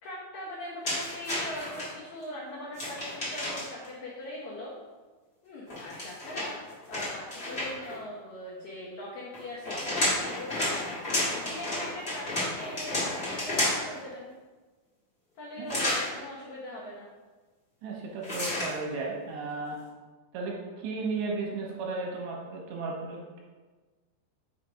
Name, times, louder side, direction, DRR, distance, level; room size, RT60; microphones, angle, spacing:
voice 1, 0.0-4.7 5.4-14.3 15.3-17.1, left 1 dB, 80° left, -6 dB, 1.6 m, -41 dB
sound 1, 0.8-1.9 2.7-3.9 5.7-7.9 9.3-14.0 15.7-16.1 18.2-18.7, left 1 dB, 65° left, 0.6 m, -31 dB
voice 2, 17.8-19.8 20.3-23.4, right 3 dB, 75° right, -2 dB, 2.8 m, -34 dB
6.5 x 3.3 x 4.9 m, 1.3 s
omnidirectional pair, 4.8 m